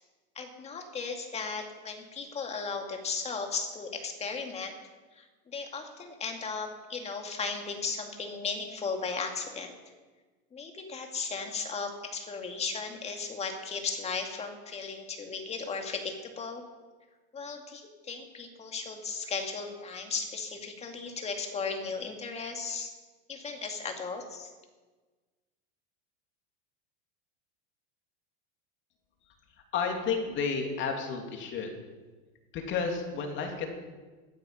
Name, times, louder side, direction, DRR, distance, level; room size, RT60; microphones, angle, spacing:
voice 1, 0.4-4.7 5.1-9.7 10.5-16.6 17.3-22.9 23.3-24.5, left 4 dB, 20° left, 4 dB, 2.3 m, -36 dB
voice 2, 29.7-31.7 32.5-33.7, left 5 dB, 40° left, 3 dB, 2.7 m, -31 dB
15.0 x 12.5 x 5.8 m, 1.3 s
supercardioid pair, 135°, 29 cm